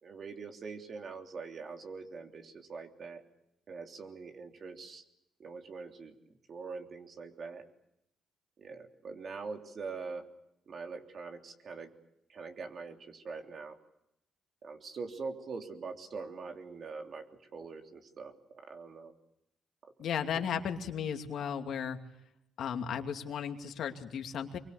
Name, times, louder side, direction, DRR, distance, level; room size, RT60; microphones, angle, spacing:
voice 1, 0.0-3.2 3.7-5.0 5.4-7.7 8.6-10.3 10.7-11.9 12.3-13.8 14.6-19.1 19.8-19.9 20.3-20.4, right 4 dB, 50° right, 4 dB, 3.4 m, -43 dB
voice 2, 20.0-22.0 22.6-24.6, left 8 dB, 70° left, 5 dB, 2.6 m, -35 dB
25.5 x 23.0 x 8.4 m, 0.82 s
cardioid pair, 90°, 0 cm